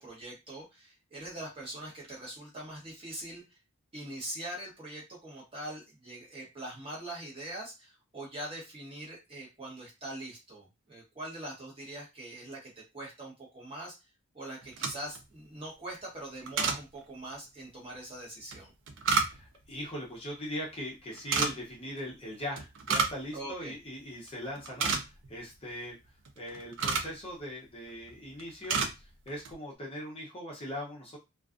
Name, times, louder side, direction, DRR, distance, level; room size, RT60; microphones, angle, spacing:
voice 1, 0.0-3.6 3.9-14.0 14.3-18.7 23.3-23.8, right 1 dB, 25° right, -4 dB, 1.1 m, -43 dB
sound 1, 14.6-15.2 16.5-16.8 18.5-19.6 21.2-21.5 22.6-23.2 23.5-23.6 24.1-24.3 24.6-25.3 26.2-27.2 27.9-28.1 28.4-28.9 29.3-29.5, right 5 dB, 55° right, 0.4 m, -30 dB
voice 2, 19.1-25.9 26.4-31.2, equal, 25° left, -3 dB, 0.6 m, -40 dB
2.4 x 2.3 x 2.4 m, 0.24 s
head